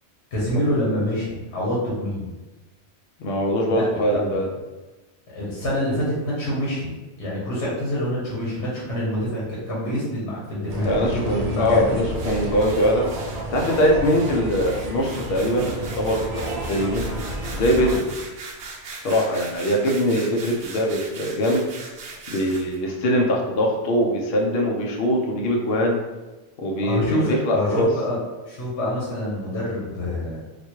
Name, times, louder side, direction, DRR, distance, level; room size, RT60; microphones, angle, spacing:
voice 1, 0.3-2.3 3.7-3.8 4.1-4.3 5.3-6.9 7.2-11.9 26.8-28.2 28.5-30.4, equal, 85° left, -6 dB, 1.3 m, -26 dB
voice 2, 3.2-4.5 10.8-13.1 13.5-17.1 17.5-18.1 19.0-21.7 22.3-26.0 26.6-27.9, equal, 65° left, -1 dB, 0.8 m, -22 dB
sound 1, 10.7-18.0, right 1 dB, 55° right, 0.4 m, -31 dB
sound 2, 12.1-22.8, right 3 dB, 80° right, 0.9 m, -40 dB
4.1 x 2.2 x 3.0 m, 1.1 s
omnidirectional pair, 1.1 m